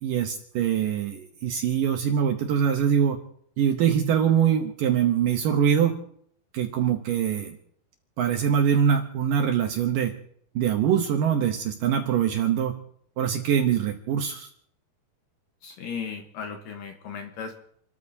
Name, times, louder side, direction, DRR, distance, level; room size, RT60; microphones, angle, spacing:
voice 1, 0.0-3.2 3.6-6.0 6.5-7.6 8.2-10.1 10.6-12.8 13.2-14.5, right 8 dB, 70° right, 4 dB, 2.2 m, -23 dB
voice 2, 15.6-17.6, left 6 dB, 65° left, 4 dB, 2.5 m, -36 dB
29.5 x 13.5 x 2.8 m, 0.64 s
omnidirectional pair, 4.8 m